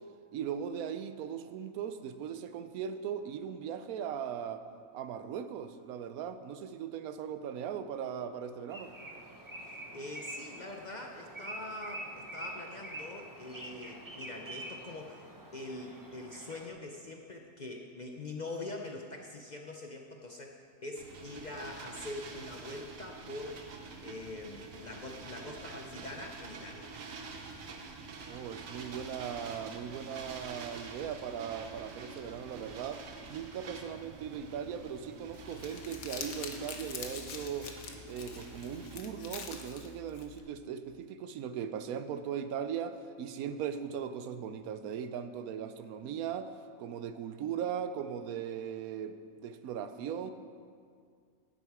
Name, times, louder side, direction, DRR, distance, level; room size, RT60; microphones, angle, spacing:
voice 1, 0.3-4.7 4.9-8.9 28.3-33.0 33.3-37.7 38.1-46.5 46.8-50.3, right 8 dB, 85° right, 11 dB, 1.1 m, -38 dB
sound 1, 8.7-16.7, right 1 dB, 20° right, 0.7 m, -46 dB
voice 2, 9.6-23.7 24.0-26.9, left 2 dB, 45° left, 2 dB, 0.6 m, -44 dB
sound 2, 21.0-39.0, right 4 dB, 70° right, 1.3 m, -47 dB
Crumpling crinkling, 35.3-40.4, left 5 dB, 75° left, 1.3 m, -45 dB
10.5 x 8.5 x 4.7 m, 2.1 s
omnidirectional pair, 1.5 m